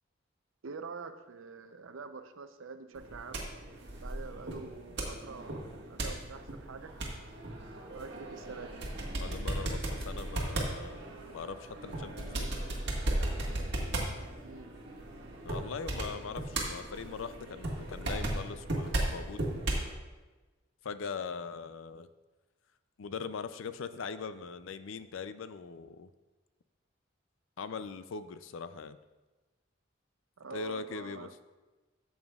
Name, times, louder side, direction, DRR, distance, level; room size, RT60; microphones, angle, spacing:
voice 1, 0.6-3.4 4.0-6.9 7.9-8.8 14.4-14.7 30.4-31.3, right 4 dB, 80° right, 9 dB, 0.6 m, -45 dB
sound 1, 2.9-19.9, right 1 dB, 55° right, 1.7 m, -36 dB
voice 2, 9.2-12.5 15.4-19.5 20.8-22.1 23.0-26.1 27.6-29.0 30.5-31.3, left 5 dB, 75° left, 13 dB, 0.4 m, -41 dB
13.0 x 7.3 x 2.4 m, 1.2 s
head